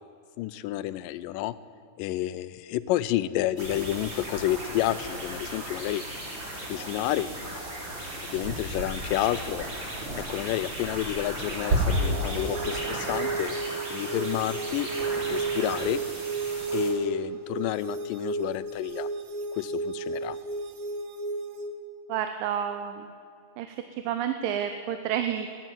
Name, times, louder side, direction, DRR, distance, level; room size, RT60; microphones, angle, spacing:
voice 1, 0.4-1.5 2.0-6.0 6.7-7.6 8.0-9.6 10.2-13.6 13.9-14.9 15.3-16.0 16.7-19.1 19.5-20.4, left 14 dB, 85° left, 15 dB, 2.2 m, -30 dB
sound 1, 3.6-16.9, right 1 dB, 35° right, 3.7 m, -33 dB
sound 2, 11.8-21.7, right 4 dB, 65° right, 2.1 m, -33 dB
voice 2, 22.1-23.1 23.6-23.7 24.1-25.5, right 9 dB, 90° right, 7 dB, 2.5 m, -29 dB
15.0 x 10.0 x 9.1 m, 2.4 s
omnidirectional pair, 3.9 m